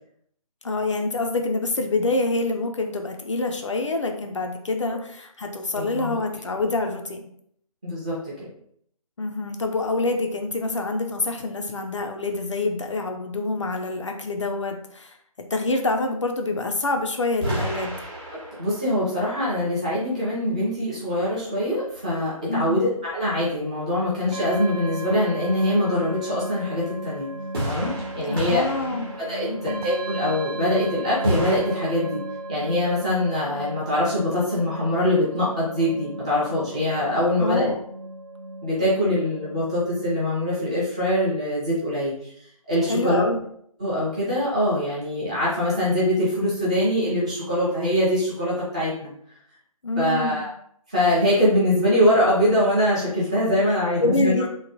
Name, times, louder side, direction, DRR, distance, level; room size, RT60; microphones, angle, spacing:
voice 1, 0.6-7.3 9.2-15.1 15.5-18.0 22.5-22.9 28.2-29.1 29.5-29.8 37.4-37.8 42.9-43.4 49.8-50.4 54.0-54.5, left 2 dB, 55° left, 4 dB, 0.4 m, -26 dB
voice 2, 5.7-6.2 7.8-8.5 18.6-27.3 27.7-28.6 29.3-32.2 32.5-37.7 38.6-42.3 42.7-43.2 43.8-49.1 50.0-50.5 50.9-54.3, left 1 dB, 10° right, -9 dB, 0.4 m, -23 dB
sound 1, 17.4-19.1 27.5-29.8 31.2-31.6, equal, 35° right, 0.9 m, -30 dB
sound 2, 24.3-40.1, right 2 dB, 85° right, 0.4 m, -35 dB
3.0 x 2.1 x 2.7 m, 0.68 s
figure-of-eight pair, 150°, 19 cm